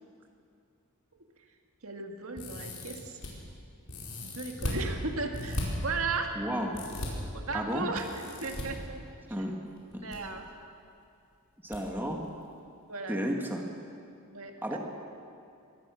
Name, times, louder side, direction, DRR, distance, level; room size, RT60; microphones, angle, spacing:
voice 1, 1.8-3.2 4.2-6.4 7.3-9.0 9.3-9.4 10.0-10.4 12.9-13.4 14.3-14.8, right 4 dB, 70° right, 3 dB, 1.9 m, -36 dB
sound 1, 2.4-3.3 3.9-4.8 5.3-5.6 6.7-7.1 8.0-8.6 9.8-10.2 10.4-10.5 11.7-11.8 12.2-12.3, left 1 dB, 85° left, 4.8 m, -37 dB
voice 2, 6.4-6.8 7.5-7.9 9.3-9.6 9.9-10.0 11.6-12.2 13.1-13.6 14.6-14.8, equal, 10° right, 1 dB, 2.0 m, -32 dB
23.0 x 17.5 x 6.4 m, 2.5 s
head